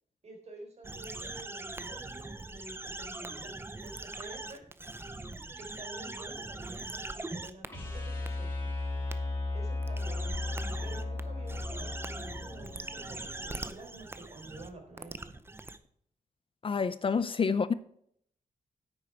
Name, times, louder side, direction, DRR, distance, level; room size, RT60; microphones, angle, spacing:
voice 1, 0.2-3.5 3.8-4.6 5.0-8.5 9.2-10.4 10.8-15.2, right 2 dB, 50° right, 3.9 m, -50 dB
sound 1, 0.8-7.7 8.3-8.4 9.1-9.2 9.8-11.2 11.5-15.8, right 2 dB, 15° right, 0.6 m, -41 dB
sound 2, 7.7-13.8, left 2 dB, 15° left, 5.3 m, -36 dB
voice 2, 16.6-17.7, left 5 dB, 40° left, 0.5 m, -28 dB
10.0 x 8.6 x 4.5 m
wide cardioid pair, 140°, 14 cm